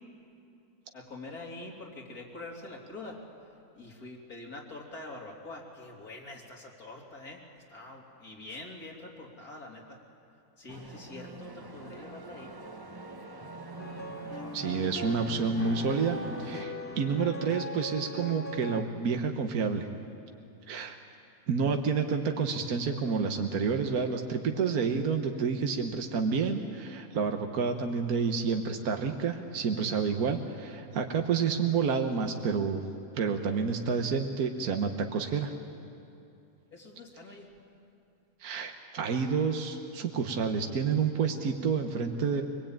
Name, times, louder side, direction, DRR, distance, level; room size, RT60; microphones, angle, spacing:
voice 1, 0.9-3.2 3.7-10.0 10.6-12.8 36.7-37.5, left 2 dB, 75° left, -1 dB, 3.5 m, -45 dB
sound 1, 10.7-16.7, right 2 dB, 20° right, 0.9 m, -44 dB
sound 2, 13.8-18.8, left 1 dB, 10° left, 1.8 m, -40 dB
voice 2, 14.5-19.9 20.7-21.0 21.5-32.8 33.2-35.5 38.4-42.4, right 5 dB, 75° right, 4 dB, 1.6 m, -29 dB
25.0 x 20.5 x 8.8 m, 2.7 s
omnidirectional pair, 1.6 m